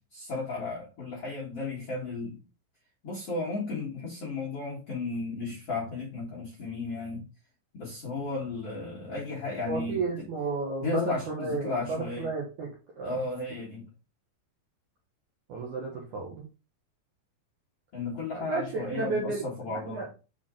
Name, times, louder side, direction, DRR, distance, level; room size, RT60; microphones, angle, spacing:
voice 1, 0.1-2.4 3.0-7.2 7.7-10.3 10.8-12.3 13.0-13.9 17.9-20.1, left 3 dB, 60° left, 1.6 m, -34 dB
voice 2, 9.7-12.7 13.0-13.2 15.5-16.4 18.3-20.1, right 3 dB, 65° right, 2.0 m, -32 dB
7.1 x 4.4 x 3.7 m
omnidirectional pair, 5.5 m